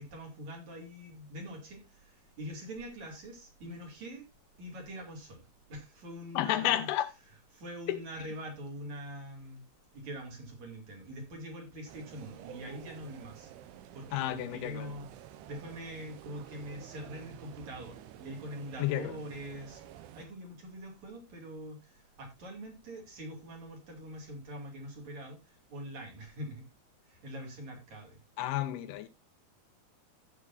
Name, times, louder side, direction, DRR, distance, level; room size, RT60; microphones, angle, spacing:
voice 1, 0.0-4.3 4.6-6.9 7.5-9.6 9.9-13.5 13.9-26.7 27.0-28.2, equal, 50° right, 3.6 m, -44 dB
voice 2, 6.4-7.1 7.9-8.0 14.1-14.9 18.8-19.2 28.4-29.1, left 13 dB, 85° left, 2.7 m, -31 dB
sound 1, 11.9-20.3, right 11 dB, 85° right, 2.9 m, -50 dB
12.5 x 8.4 x 2.6 m
omnidirectional pair, 4.6 m